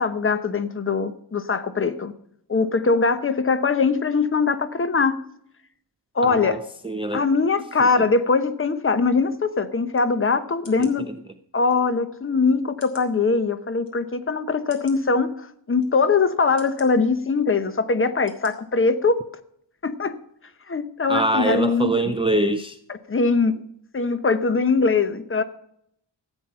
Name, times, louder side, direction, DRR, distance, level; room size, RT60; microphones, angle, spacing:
voice 1, 0.0-2.1 2.5-5.2 6.1-6.6 7.1-11.1 11.5-19.2 19.8-20.2 20.7-22.1 23.1-23.6 23.9-25.4, left 4 dB, 30° left, 0.9 m, -22 dB
voice 2, 6.2-7.2 7.8-8.0 10.8-10.9 21.1-22.8, right 2 dB, 10° right, 0.5 m, -24 dB
sound 1, 9.9-10.1 10.6-11.0 11.7-11.8 12.8-13.1 13.8-13.9 14.7-15.0 15.8-15.9 16.6-16.9 17.6-17.7 18.3-18.5 18.9-19.0, left 3 dB, 65° left, 2.9 m, -48 dB
14.5 x 8.9 x 5.6 m
wide cardioid pair, 165°, 45 cm